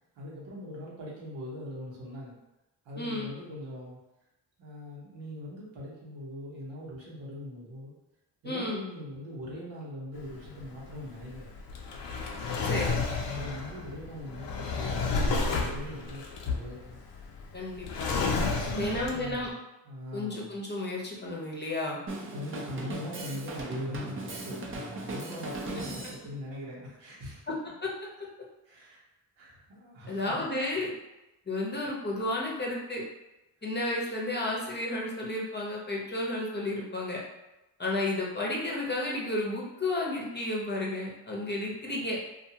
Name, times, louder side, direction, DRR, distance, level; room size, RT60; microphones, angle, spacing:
voice 1, 0.2-2.4 2.8-4.0 4.6-7.9 8.4-11.6 13.3-17.0 18.6-19.6 19.8-20.6 22.3-27.5 28.6-29.0 29.4-30.4, left 1 dB, 85° right, -5 dB, 1.1 m, -41 dB
voice 2, 3.0-3.3 8.4-8.8 12.6-13.0 17.5-18.1 18.8-19.5 20.1-22.0 27.5-27.6 27.8-27.9 30.1-30.9 31.5-33.0 33.6-37.2 37.8-42.2, left 2 dB, 25° left, -3 dB, 0.7 m, -32 dB
Drawer open or close, 10.2-19.4, left 4 dB, 70° left, 0.6 m, -32 dB
Drum kit, 22.1-26.2, right 2 dB, 30° right, 0.5 m, -38 dB
2.5 x 2.3 x 2.8 m, 0.97 s
cardioid pair, 60°, 44 cm